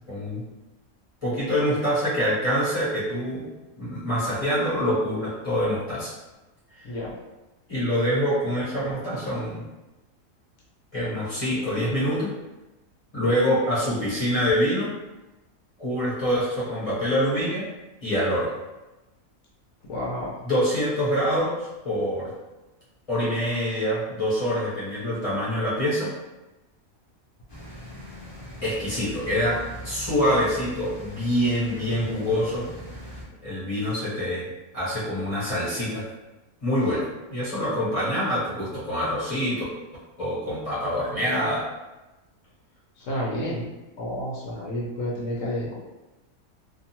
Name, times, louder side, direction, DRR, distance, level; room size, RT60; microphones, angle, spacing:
voice 1, 0.1-0.4 1.2-3.5 3.8-6.1 7.7-9.6 10.9-12.3 13.1-14.9 15.8-17.7 18.0-18.5 20.4-21.5 21.8-22.3 23.1-26.1 28.6-32.7 33.4-34.5 34.7-36.1 36.6-39.6 40.2-41.7, equal, 30° left, -11 dB, 0.9 m, -25 dB
voice 2, 19.9-20.3 43.0-43.7 44.0-45.8, equal, 70° left, -5 dB, 0.9 m, -30 dB
sound 1, 27.5-33.2, equal, 45° left, 0.3 m, -40 dB
2.5 x 2.3 x 2.8 m, 1.1 s
omnidirectional pair, 1.5 m